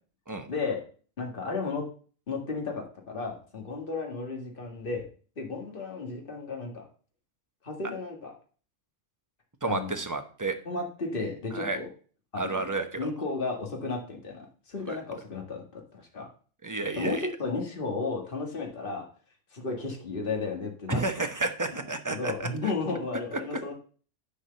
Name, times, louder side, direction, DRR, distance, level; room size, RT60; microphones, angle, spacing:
voice 1, 0.5-0.8 1.2-1.8 2.3-5.1 5.4-6.9 7.6-8.3 9.7-10.0 10.7-11.9 12.3-16.3 17.0-19.1 19.5-21.3 21.7-21.8 22.1-23.7, left 4 dB, 45° left, 1 dB, 2.0 m, -34 dB
voice 2, 9.6-10.6 11.5-11.8 12.4-13.1 14.9-15.0 16.6-17.3 20.9-22.7, right 3 dB, 15° right, 6 dB, 0.9 m, -31 dB
10.0 x 4.7 x 6.8 m, 0.41 s
omnidirectional pair, 1.3 m